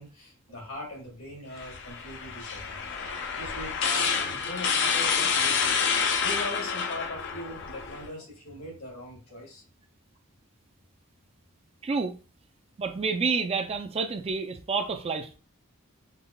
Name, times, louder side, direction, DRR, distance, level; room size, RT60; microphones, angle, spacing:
voice 1, 0.0-2.8 3.3-5.8 6.2-9.6, left 1 dB, 80° left, 1.8 m, -40 dB
sound 1, 1.6-8.1, left 6 dB, 60° left, 0.5 m, -28 dB
voice 2, 11.8-12.1 12.8-15.4, right 4 dB, 30° right, 0.3 m, -29 dB
5.4 x 2.2 x 2.2 m
head